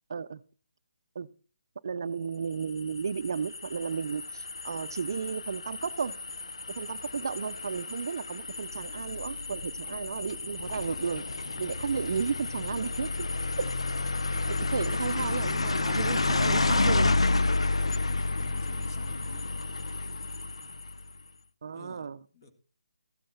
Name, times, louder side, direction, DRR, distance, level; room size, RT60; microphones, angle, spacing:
voice 1, 0.1-0.4 1.2-1.3 1.8-6.1 6.8-11.2 11.6-13.3 13.6-13.7 14.5-17.1 21.6-22.2, right 6 dB, 45° right, 0.5 m, -33 dB
sound 1, 2.6-21.1, left 3 dB, 90° left, 0.6 m, -31 dB
voice 2, 18.0-19.6 21.7-22.1 22.3-22.5, left 1 dB, 35° left, 1.9 m, -50 dB
14.5 x 7.6 x 4.3 m
hypercardioid pair, 170°, 3 cm